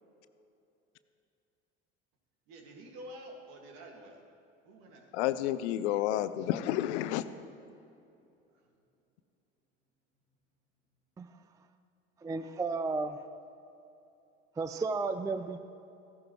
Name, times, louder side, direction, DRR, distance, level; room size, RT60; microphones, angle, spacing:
voice 1, 2.5-4.2 4.6-5.1 8.5-8.7, right 1 dB, 65° right, 2 dB, 2.0 m, -49 dB
voice 2, 5.1-7.2, left 13 dB, 70° left, 14 dB, 0.6 m, -30 dB
voice 3, 12.2-13.2 14.6-15.6, right 3 dB, 10° right, 10 dB, 0.4 m, -33 dB
14.5 x 11.5 x 3.1 m, 2.7 s
hypercardioid pair, 70°, 36 cm